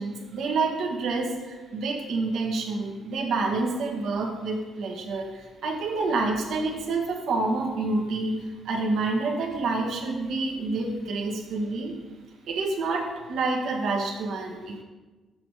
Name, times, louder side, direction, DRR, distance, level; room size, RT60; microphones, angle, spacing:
voice 1, 0.0-12.0 12.5-14.8, right 3 dB, 75° right, 1 dB, 1.5 m, -28 dB
7.4 x 6.2 x 4.8 m, 1.3 s
cardioid pair, 90°, 0 cm